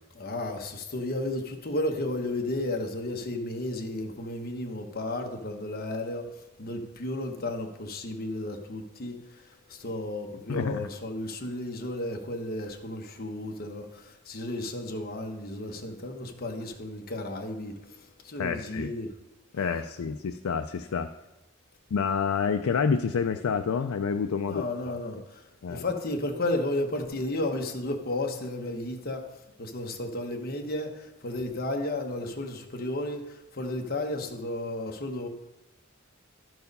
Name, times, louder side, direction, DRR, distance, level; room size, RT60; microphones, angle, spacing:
voice 1, 0.2-19.2 24.4-35.3, left 1 dB, 45° left, 1.1 m, -33 dB
voice 2, 10.5-10.9 18.4-18.9 19.5-21.1 21.9-24.6 25.6-25.8, left 6 dB, 85° left, 0.4 m, -28 dB
12.0 x 4.7 x 5.3 m
head